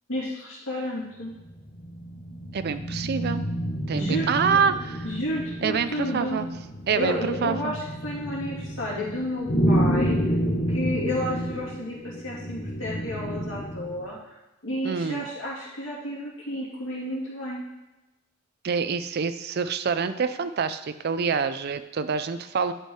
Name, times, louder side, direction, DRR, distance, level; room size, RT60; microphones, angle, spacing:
voice 1, 0.1-1.4 3.9-4.6 5.0-6.5 6.9-10.2 10.7-14.3 14.6-17.6, left 1 dB, 70° left, -5 dB, 2.8 m, -31 dB
sound 1, 1.4-14.1, equal, 50° left, 1.3 m, -29 dB
voice 2, 2.5-3.4 3.9-5.0 5.6-6.5 6.9-7.7 14.8-15.2 18.6-22.7, right 6 dB, 55° right, 11 dB, 0.4 m, -26 dB
11.0 x 4.6 x 4.6 m, 1.0 s
head